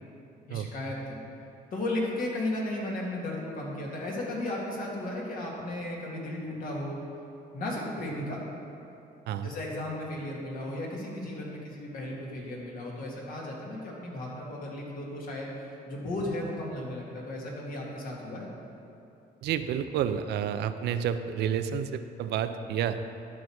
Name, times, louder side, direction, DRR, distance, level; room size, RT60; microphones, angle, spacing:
voice 1, 0.5-1.2 1.7-7.0 7.5-8.4 9.4-18.5, left 1 dB, 55° left, -3 dB, 2.0 m, -35 dB
voice 2, 19.4-23.0, right 8 dB, 85° right, 10 dB, 0.5 m, -30 dB
11.0 x 6.3 x 4.6 m, 2.7 s
cardioid pair, 120°, 17 cm